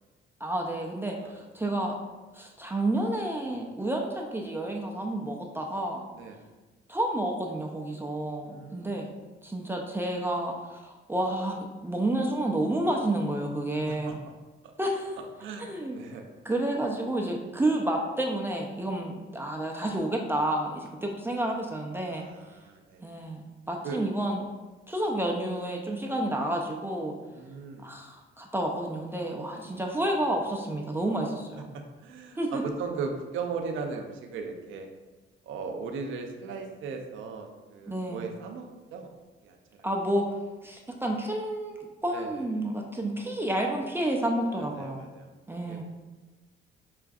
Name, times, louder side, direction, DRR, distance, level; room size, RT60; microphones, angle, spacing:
voice 1, 0.4-2.0 2.3-6.0 6.9-9.1 9.4-14.2 14.8-15.1 15.6-16.0 16.4-22.2 23.0-23.4 23.7-24.5 24.9-27.1 27.8-31.7 32.4-32.6 37.9-38.3 39.8-40.2 40.6-45.1 45.5-45.8, right 1 dB, 10° right, 0 dB, 0.4 m, -30 dB
voice 2, 8.4-9.0 13.9-14.1 15.4-16.3 22.1-23.0 23.8-24.0 27.3-27.9 32.0-34.9 35.4-39.1 39.4-39.9 42.1-42.5 44.6-45.3 45.7-45.8, right 5 dB, 80° right, 3 dB, 0.5 m, -38 dB
5.6 x 2.5 x 2.3 m, 1.2 s
cardioid pair, 90°, 20 cm